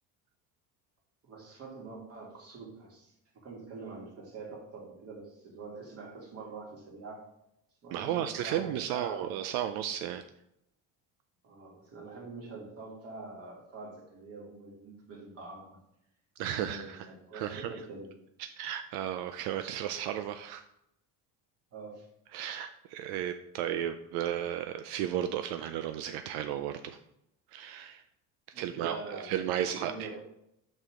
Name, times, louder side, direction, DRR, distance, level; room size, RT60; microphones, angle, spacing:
voice 1, 1.2-3.1 3.4-7.3 7.8-9.4 11.4-15.8 16.4-18.1 21.7-22.1 28.5-30.2, right 3 dB, 40° right, -1 dB, 2.5 m, -45 dB
voice 2, 7.9-10.2 16.4-17.1 17.3-17.7 18.4-20.6 22.3-27.0 27.5-28.0 28.5-30.1, right 10 dB, 85° right, 9 dB, 0.6 m, -34 dB
6.4 x 6.4 x 3.7 m, 0.78 s
cardioid pair, 140°, 36 cm